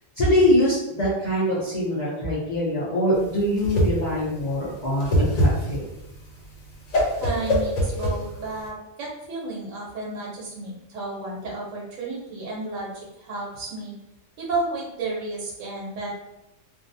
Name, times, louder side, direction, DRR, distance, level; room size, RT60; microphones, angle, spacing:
voice 1, 0.2-5.9, left 1 dB, 50° left, -8 dB, 0.6 m, -23 dB
Whoosh swoosh swish, 3.2-8.7, equal, 85° left, 1.1 m, -24 dB
voice 2, 7.2-13.9 14.4-16.1, right 2 dB, 75° right, -3 dB, 1.0 m, -32 dB
2.5 x 2.0 x 2.5 m, 0.91 s
omnidirectional pair, 1.3 m